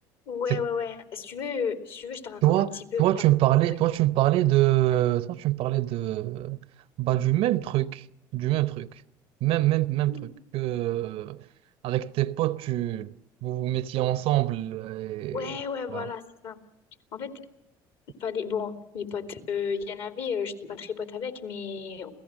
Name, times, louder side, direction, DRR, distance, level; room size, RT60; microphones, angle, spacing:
voice 1, 0.3-3.0 10.1-10.3 15.3-16.6 17.1-17.3 18.2-22.1, left 6 dB, 65° left, 2.7 m, -33 dB
voice 2, 2.4-6.6 7.0-8.0 8.3-9.0 9.4-11.4 11.8-13.1 13.4-15.5 15.9-16.1, right 15 dB, 65° right, 0.7 m, -25 dB
28.0 x 17.0 x 6.2 m
hypercardioid pair, 75°, 10 cm